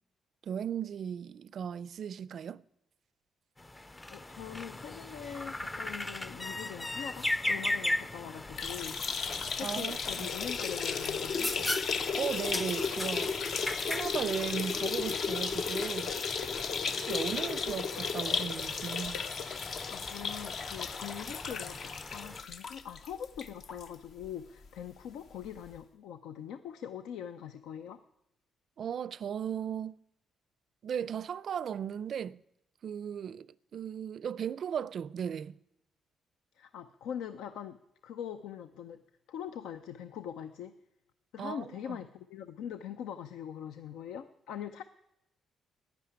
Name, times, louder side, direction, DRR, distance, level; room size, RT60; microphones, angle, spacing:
voice 1, 0.4-2.6 9.6-10.3 12.2-13.3 13.8-16.1 16.9-19.2 28.8-30.0 30.8-32.4 32.8-35.5 41.4-42.0, right 8 dB, 60° right, 0.4 m, -36 dB
sound 1, 3.6-22.4, left 1 dB, 15° left, 0.5 m, -39 dB
voice 2, 4.1-9.0 9.6-11.5 19.9-28.0 36.6-37.8 38.0-39.0 39.3-40.7 41.3-44.8, left 9 dB, 90° left, 0.5 m, -42 dB
sound 2, 8.5-23.9 24.2-24.3 24.6-24.7 25.7-25.8, left 5 dB, 60° left, 0.8 m, -34 dB
11.5 x 9.9 x 9.5 m
cardioid pair, 90°, 0 cm